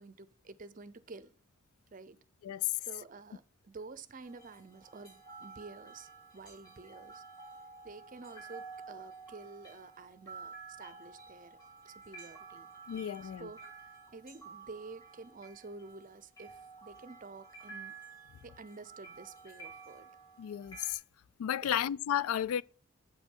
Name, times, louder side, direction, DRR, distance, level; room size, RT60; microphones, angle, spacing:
voice 1, 0.0-1.3 1.9-2.2 2.8-7.2 7.8-11.6 11.8-12.7 13.2-20.1 21.6-21.8, right 3 dB, 40° right, 0.5 m, -50 dB
sound 1, 4.2-20.9, right 4 dB, 20° left, 2.3 m, -51 dB
voice 2, 12.9-13.5 20.4-21.0 21.4-22.6, left 10 dB, 85° left, 0.3 m, -33 dB
8.5 x 5.1 x 5.4 m
head